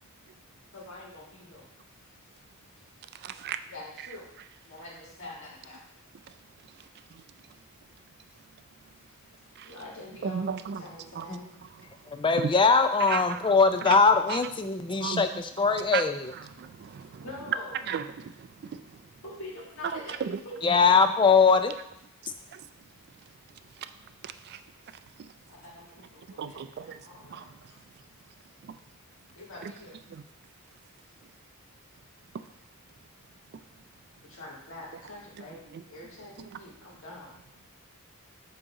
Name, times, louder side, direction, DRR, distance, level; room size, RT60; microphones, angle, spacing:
voice 1, 0.7-1.7 3.7-4.3 4.6-6.0 8.9-9.0 9.5-11.6 17.0-17.8 19.2-21.0 25.5-27.5 29.3-30.0 34.2-37.4, left 2 dB, 65° left, 1.6 m, -45 dB
voice 2, 3.2-3.6 4.0-4.1 6.3-6.4 6.7-6.8 9.6-9.7 10.2-10.9 11.1-11.3 11.6-12.5 13.0-13.5 13.8-14.0 14.3-14.4 14.9-15.4 15.7-16.1 16.3-17.3 17.9-19.0 19.9-20.4 20.8-21.1 22.2-22.6 23.2-23.3 23.7-23.9 24.2-24.6 25.2-25.3 26.2-27.7 28.6-28.8 29.6-29.7 30.1-30.2 32.3-32.4 35.4-35.5 35.7-35.8 36.4-36.6, right 7 dB, 50° right, 0.3 m, -36 dB
voice 3, 12.1-16.2 20.6-21.7, left 4 dB, 25° left, 0.4 m, -21 dB
7.6 x 2.9 x 4.8 m
head